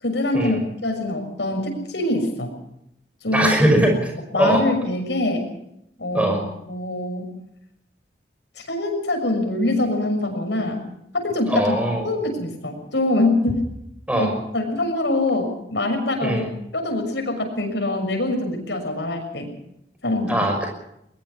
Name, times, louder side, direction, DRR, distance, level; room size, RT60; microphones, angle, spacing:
voice 1, 0.0-2.5 3.2-3.5 4.3-5.4 6.0-6.4 6.7-7.3 8.6-10.8 11.1-11.8 12.0-13.6 14.2-16.4 16.7-19.5 20.0-20.5, left 2 dB, 90° left, 4 dB, 6.7 m, -24 dB
voice 2, 3.3-4.6 6.1-6.4 11.5-12.0 14.1-14.3 16.2-16.5 20.3-20.7, right 1 dB, 10° right, 2 dB, 5.9 m, -20 dB
21.5 x 21.5 x 5.7 m, 0.78 s
head